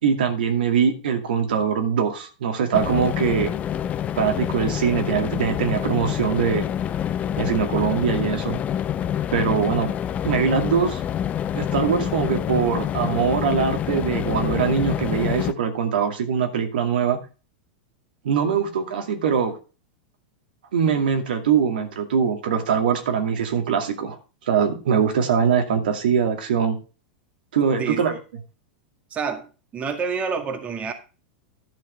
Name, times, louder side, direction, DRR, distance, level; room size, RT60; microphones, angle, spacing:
voice 1, 0.0-3.5 4.2-6.7 7.4-8.6 9.3-9.9 10.2-11.0 11.5-17.2 18.2-19.5 20.7-24.2 24.5-26.8 27.5-28.2, right 7 dB, 80° right, 5 dB, 2.3 m, -22 dB
sound 1, 2.7-15.5, left 10 dB, 30° left, 0.6 m, -27 dB
voice 2, 29.1-29.5 29.7-30.9, right 5 dB, 25° right, 6 dB, 1.9 m, -27 dB
11.5 x 5.8 x 5.6 m, 0.34 s
hypercardioid pair, 120°, 5 cm